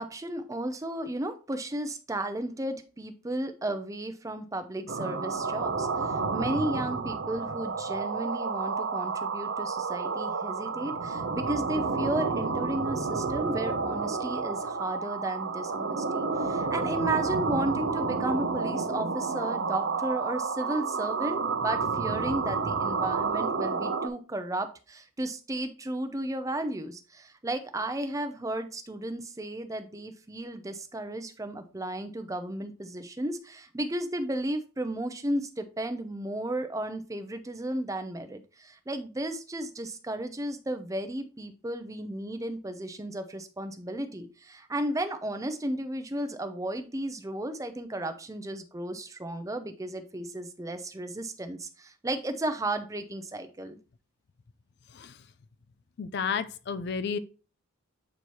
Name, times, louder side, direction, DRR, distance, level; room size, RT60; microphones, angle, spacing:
voice 1, 0.0-53.8, right 1 dB, 15° right, 0.6 m, -34 dB
sound 1, 4.9-24.1, right 4 dB, 55° right, 0.7 m, -30 dB
voice 2, 54.9-55.3 56.0-57.2, left 6 dB, 50° left, 0.4 m, -32 dB
8.4 x 2.8 x 4.6 m
head